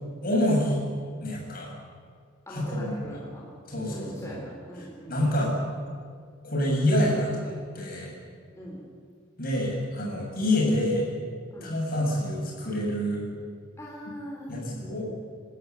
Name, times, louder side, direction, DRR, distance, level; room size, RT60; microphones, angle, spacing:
voice 1, 0.2-0.9 1.2-1.7 2.5-3.2 3.7-4.4 5.1-5.5 6.4-8.1 9.4-11.1 11.6-13.2 14.5-15.0, left 1 dB, 45° left, -2 dB, 7.4 m, -27 dB
voice 2, 2.5-3.5 3.9-5.2 8.6-8.9 11.5-11.7 13.8-15.0, equal, 15° left, -5 dB, 3.5 m, -41 dB
26.5 x 13.0 x 9.4 m, 2.1 s
head